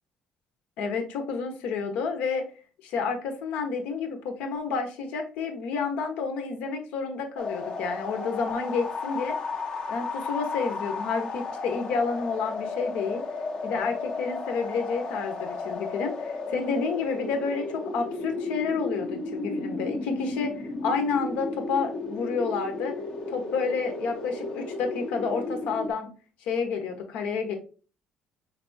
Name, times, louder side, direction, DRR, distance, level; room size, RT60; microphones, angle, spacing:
voice 1, 0.8-2.4 2.8-9.4 9.9-13.2 13.6-22.9 23.3-26.1 26.4-27.5, left 5 dB, 85° left, 5 dB, 1.0 m, -30 dB
sound 1, 7.4-25.9, left 3 dB, 40° left, 0.8 m, -34 dB
5.3 x 3.4 x 2.7 m, 0.37 s
cardioid pair, 150°, 2 cm